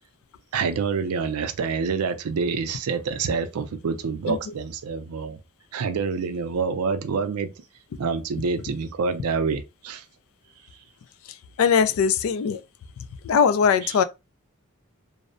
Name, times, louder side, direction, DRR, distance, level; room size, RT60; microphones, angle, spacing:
voice 1, 0.5-5.4 5.7-7.5 8.0-10.0 13.8-14.0, right 5 dB, 85° right, 0.4 m, -27 dB
voice 2, 11.6-12.6 13.2-14.0, left 6 dB, 70° left, 0.3 m, -20 dB
2.6 x 2.0 x 2.4 m
head